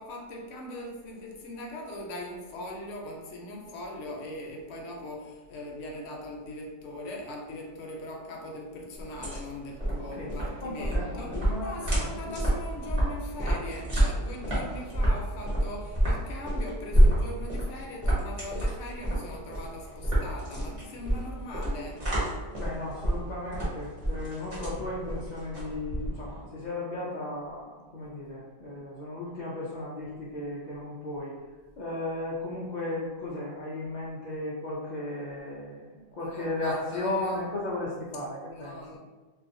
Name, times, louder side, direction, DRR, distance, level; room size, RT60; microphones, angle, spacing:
voice 1, 0.0-22.1 36.2-37.5 38.5-39.0, left 1 dB, 65° left, -1 dB, 0.8 m, -40 dB
sound 1, 9.0-26.4, right 1 dB, 30° right, 0.8 m, -28 dB
voice 2, 10.6-12.3 22.6-31.3 31.8-39.0, left 2 dB, 80° left, -7 dB, 0.4 m, -35 dB
2.5 x 2.3 x 2.5 m, 1.3 s
omnidirectional pair, 1.4 m